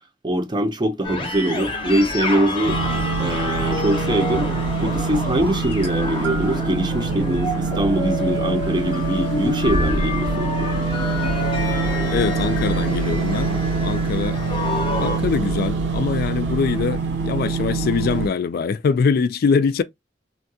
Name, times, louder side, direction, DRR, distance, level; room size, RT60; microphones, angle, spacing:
voice 1, 0.2-2.8 3.2-4.5 4.8-10.8, right 1 dB, 25° right, 0.6 m, -23 dB
sound 1, 1.0-15.2, left 2 dB, 30° left, 0.7 m, -28 dB
sound 2, 2.7-18.3, right 4 dB, 70° right, 0.8 m, -24 dB
sound 3, 5.6-6.8 7.7-7.9 8.9-9.0, right 6 dB, 90° right, 1.5 m, -36 dB
voice 2, 12.1-14.4 15.0-19.8, left 5 dB, 55° left, 0.3 m, -23 dB
3.5 x 2.3 x 2.6 m
head